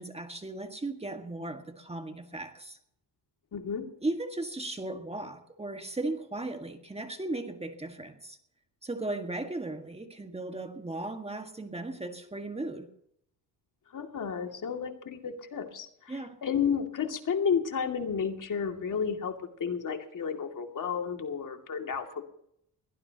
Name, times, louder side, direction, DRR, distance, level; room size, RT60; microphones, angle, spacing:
voice 1, 0.0-2.8 4.0-8.4 8.8-12.9 16.1-16.4, right 2 dB, 15° right, 5 dB, 1.7 m, -36 dB
voice 2, 3.5-3.9 13.9-22.2, left 6 dB, 45° left, 4 dB, 2.4 m, -32 dB
21.5 x 17.5 x 2.9 m, 0.72 s
cardioid pair, 95°, 42 cm